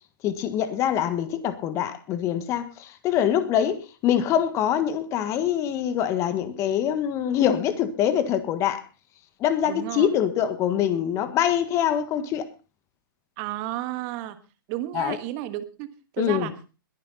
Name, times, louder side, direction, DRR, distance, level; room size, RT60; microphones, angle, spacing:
voice 1, 0.2-8.8 9.4-12.5 14.9-15.2 16.2-16.5, left 10 dB, 25° left, 1.6 m, -24 dB
voice 2, 9.6-10.1 13.4-14.4 14.7-16.5, right 15 dB, 35° right, 1.5 m, -32 dB
21.0 x 10.0 x 4.1 m
hypercardioid pair, 135°, 12 cm